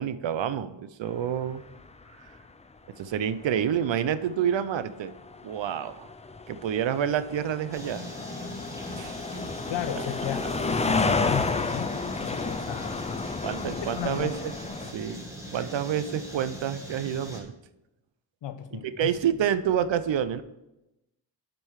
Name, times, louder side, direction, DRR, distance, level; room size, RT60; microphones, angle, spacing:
voice 1, 0.0-1.6 3.0-5.1 5.4-6.1 6.5-8.0 9.0-9.2 13.4-14.5 14.9-15.2 15.5-17.5 19.0-20.4, right 9 dB, 75° right, 14 dB, 0.6 m, -28 dB
sound 1, 1.8-2.0 2.3-2.4 3.6-14.9, left 4 dB, 15° left, 0.4 m, -31 dB
sound 2, 7.7-17.4, equal, 5° right, 1.9 m, -41 dB
voice 2, 9.7-13.3 14.0-14.3 18.4-19.1, left 10 dB, 70° left, 10 dB, 0.9 m, -35 dB
10.0 x 5.3 x 4.7 m, 0.94 s
wide cardioid pair, 105°, 45 cm